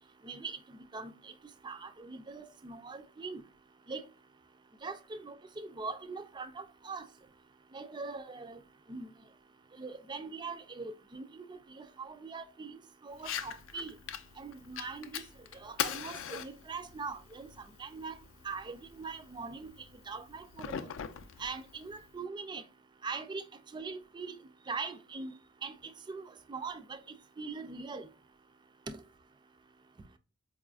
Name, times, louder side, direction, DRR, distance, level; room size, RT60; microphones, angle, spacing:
voice 1, 0.2-1.3 1.6-3.4 3.9-4.0 4.8-7.0 7.7-8.6 8.9-9.1 9.7-12.8 13.0-13.9 14.4-15.2 15.5-17.5 17.8-18.2 18.4-19.7 20.1-20.9 21.4-22.6 23.0-23.4 23.7-24.3 24.7-25.3 25.6-27.0 27.4-28.1 28.9-29.0, right 4 dB, 20° right, 0.3 m, -42 dB
Fire, 13.1-22.1, left 8 dB, 65° left, 0.4 m, -42 dB
4.8 x 2.4 x 2.3 m
head